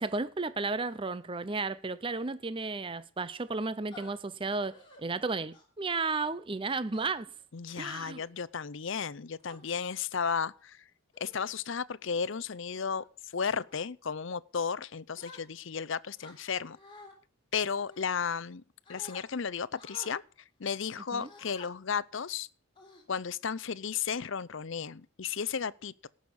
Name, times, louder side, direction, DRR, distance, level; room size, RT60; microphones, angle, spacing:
voice 1, 0.0-7.3 7.8-8.2 21.1-21.3, right 3 dB, 25° right, 0.5 m, -33 dB
sound 1, 3.9-4.1 4.7-5.0 5.5-5.8 6.9-7.4 8.0-8.3 9.0-9.6 10.4-10.6 11.1-11.5 12.0-12.2 12.7-13.1 13.6-13.8 15.2-15.8 16.2-17.1 17.8-18.6 18.9-19.2 19.8-20.2 21.2-21.7 22.2-22.3 22.8-23.4, left 1 dB, 20° left, 3.6 m, -52 dB
voice 2, 7.5-10.8 11.2-16.8 17.5-18.6 18.9-20.2 20.6-22.5 23.1-26.1, left 6 dB, 60° left, 0.6 m, -34 dB
18.0 x 6.4 x 7.0 m
head